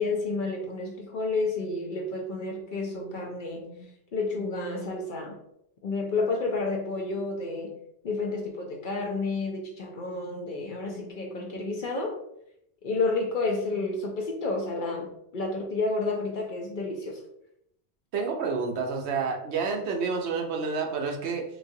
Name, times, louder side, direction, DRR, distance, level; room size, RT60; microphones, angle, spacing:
voice 1, 0.0-5.3 5.8-7.8 8.0-12.1 12.8-17.2, left 3 dB, 55° left, 0 dB, 0.6 m, -30 dB
voice 2, 18.1-21.4, right 5 dB, 75° right, 2 dB, 0.9 m, -29 dB
4.0 x 2.3 x 2.6 m, 0.76 s
omnidirectional pair, 1.2 m